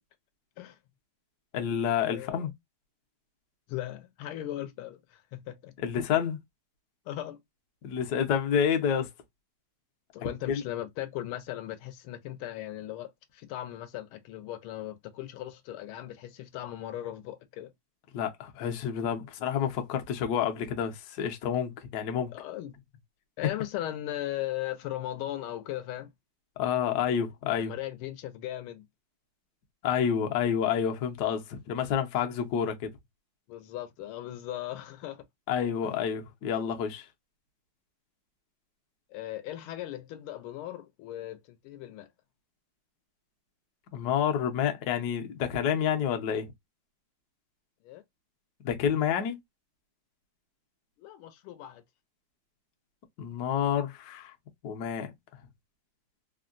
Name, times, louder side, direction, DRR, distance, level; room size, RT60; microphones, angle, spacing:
voice 1, 1.5-2.5 5.8-6.4 7.8-9.1 10.5-10.6 18.1-22.3 26.6-27.7 29.8-32.9 35.5-37.1 43.9-46.5 48.6-49.4 53.2-54.3 54.6-55.1, left 8 dB, 65° left, 1.0 m, -29 dB
voice 2, 2.1-2.5 3.7-5.7 7.1-7.4 10.1-17.7 22.3-22.7 23.4-26.1 27.6-28.9 33.5-35.2 35.8-36.0 39.1-42.1 47.8-48.0 51.0-51.8, left 13 dB, 85° left, 1.4 m, -38 dB
3.6 x 2.1 x 2.4 m
omnidirectional pair, 2.3 m